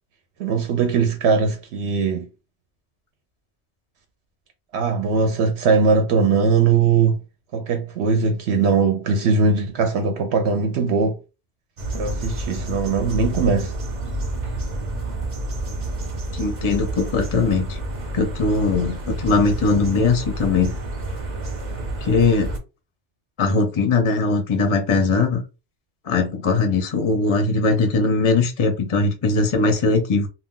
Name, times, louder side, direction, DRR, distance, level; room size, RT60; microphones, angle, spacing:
voice 1, 0.4-2.3 4.7-7.2 7.5-11.2 11.9-13.7, right 5 dB, 75° right, 0.8 m, -20 dB
sound 1, 11.8-22.6, right 1 dB, 45° right, 0.8 m, -29 dB
voice 2, 16.3-17.8 18.1-20.7 22.0-22.5 23.4-25.4 26.1-30.3, left 3 dB, 40° left, 0.4 m, -20 dB
2.3 x 2.2 x 3.6 m
omnidirectional pair, 1.1 m